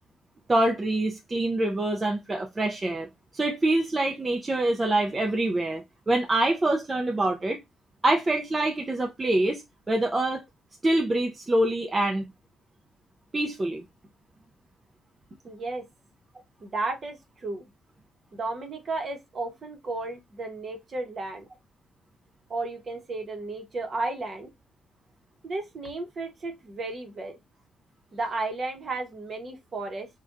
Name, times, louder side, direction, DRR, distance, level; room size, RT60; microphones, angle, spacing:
voice 1, 0.5-7.6 8.0-10.4 10.8-12.3 13.3-13.9, right 1 dB, 25° right, 0.5 m, -25 dB
voice 2, 15.4-15.9 16.6-17.6 18.3-21.5 22.5-24.5 25.4-27.4 28.1-30.1, right 3 dB, 45° right, 0.9 m, -33 dB
3.3 x 2.2 x 2.5 m
cardioid pair, 90°, 0 cm